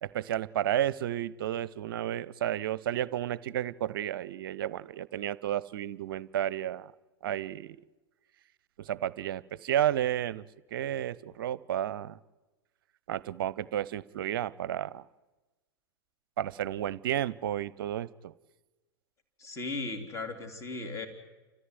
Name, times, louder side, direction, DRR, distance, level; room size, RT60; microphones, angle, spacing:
voice 1, 0.0-6.9 7.2-7.8 8.8-10.5 10.7-12.2 13.1-15.1 16.4-18.3, right 11 dB, 55° right, 20 dB, 0.7 m, -32 dB
voice 2, 19.4-21.1, left 3 dB, 20° left, 5 dB, 3.7 m, -36 dB
30.0 x 14.0 x 9.5 m, 1.2 s
figure-of-eight pair, 95°, 14 cm